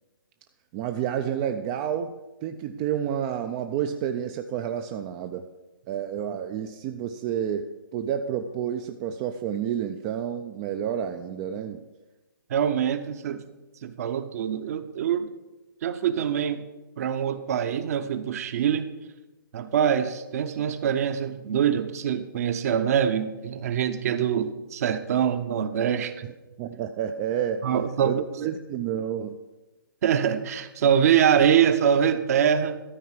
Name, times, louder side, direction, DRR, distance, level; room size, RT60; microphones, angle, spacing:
voice 1, 0.7-2.1 2.4-5.5 5.9-11.8 26.6-27.7 28.0-29.4, right 9 dB, 20° right, 7 dB, 0.3 m, -30 dB
voice 2, 12.5-13.4 13.8-15.3 15.8-16.6 17.0-18.9 19.5-26.1 27.6-28.5 30.0-32.8, right 8 dB, 45° right, 11 dB, 0.7 m, -24 dB
13.0 x 4.6 x 7.4 m, 1.1 s
hypercardioid pair, 145°, 12 cm